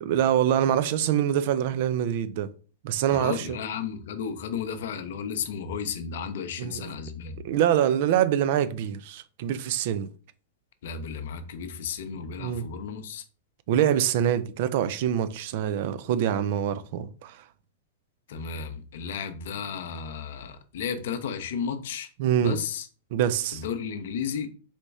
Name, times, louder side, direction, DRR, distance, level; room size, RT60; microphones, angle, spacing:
voice 1, 0.0-2.5 2.8-3.6 6.6-6.9 7.4-10.1 12.4-12.7 13.7-17.4 22.2-22.6 23.1-23.6, right 10 dB, 50° right, 0.4 m, -25 dB
voice 2, 3.1-7.4 10.8-13.2 18.3-22.1 22.4-22.9 23.5-24.5, left 7 dB, 60° left, 0.6 m, -33 dB
4.3 x 2.9 x 3.5 m
figure-of-eight pair, 100°, 0 cm